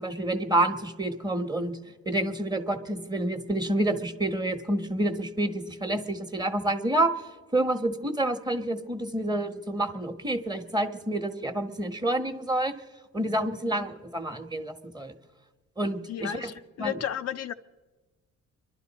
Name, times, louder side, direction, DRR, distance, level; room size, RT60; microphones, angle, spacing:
voice 1, 0.0-1.8 2.0-12.7 13.1-15.1 15.8-16.5 16.8-16.9, right 1 dB, 15° right, 1.1 m, -28 dB
voice 2, 16.1-17.5, left 10 dB, 55° left, 0.5 m, -33 dB
25.0 x 11.5 x 4.1 m
cardioid pair, 90°, 30 cm